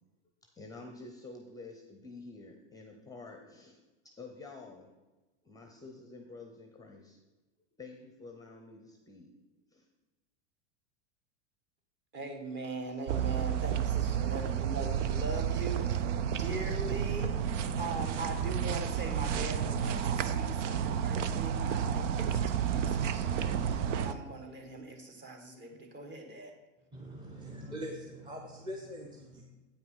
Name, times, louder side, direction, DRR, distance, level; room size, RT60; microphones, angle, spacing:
voice 1, 0.6-3.8 4.2-4.9 5.4-7.2 7.8-9.3 9.7-9.9, left 3 dB, 10° left, 4 dB, 0.7 m, -49 dB
voice 2, 12.1-26.5, right 2 dB, 30° right, 4 dB, 1.5 m, -41 dB
sound 1, 13.1-24.1, right 8 dB, 80° right, 0.7 m, -31 dB
voice 3, 26.9-29.4, equal, 10° right, 0 dB, 0.9 m, -42 dB
8.6 x 5.7 x 5.5 m, 1.2 s
supercardioid pair, 130°, 36 cm